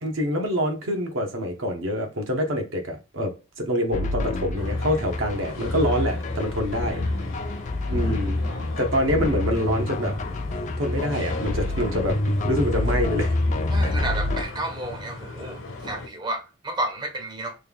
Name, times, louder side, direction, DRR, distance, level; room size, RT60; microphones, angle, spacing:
voice 1, 0.0-7.0 7.9-8.4 8.8-10.1 10.6-13.3, equal, 70° right, 1.0 m, -26 dB
sound 1, 3.9-14.4, left 2 dB, 35° left, 0.4 m, -27 dB
sound 2, 4.5-16.1, left 2 dB, 65° left, 0.9 m, -37 dB
voice 2, 13.7-17.6, right 2 dB, 20° right, 0.6 m, -31 dB
3.3 x 2.3 x 3.5 m
head